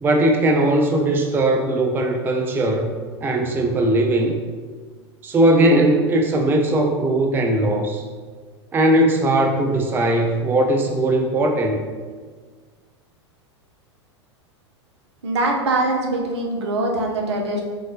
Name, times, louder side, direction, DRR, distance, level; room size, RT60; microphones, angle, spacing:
voice 1, 0.0-2.9 3.2-4.4 5.2-8.0 8.7-11.8, right 1 dB, 15° right, 3 dB, 0.4 m, -19 dB
voice 2, 15.2-17.6, right 2 dB, 70° right, 1 dB, 0.8 m, -22 dB
6.5 x 2.7 x 2.8 m, 1.5 s
figure-of-eight pair, 90°, 15 cm